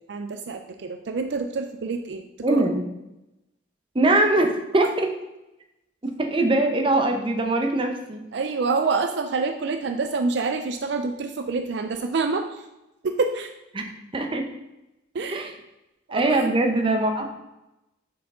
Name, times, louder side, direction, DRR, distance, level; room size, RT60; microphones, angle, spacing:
voice 1, 0.0-2.6 8.3-12.6 13.0-13.5 15.1-15.5 16.1-16.7, right 4 dB, 60° right, 6 dB, 0.4 m, -27 dB
voice 2, 2.4-2.8 3.9-5.1 6.0-8.2 13.7-13.8 14.1-14.4 15.3-15.5 16.1-17.3, right 2 dB, 25° right, 4 dB, 0.7 m, -22 dB
7.3 x 4.7 x 3.7 m, 0.95 s
head